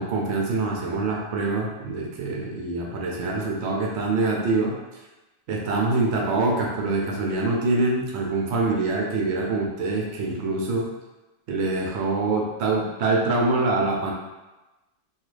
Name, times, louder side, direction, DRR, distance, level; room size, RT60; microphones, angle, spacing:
voice 1, 0.0-4.7 5.5-10.9 11.5-14.1, right 3 dB, 65° right, -1 dB, 0.9 m, -25 dB
3.2 x 2.4 x 3.2 m, 1.1 s
omnidirectional pair, 1.3 m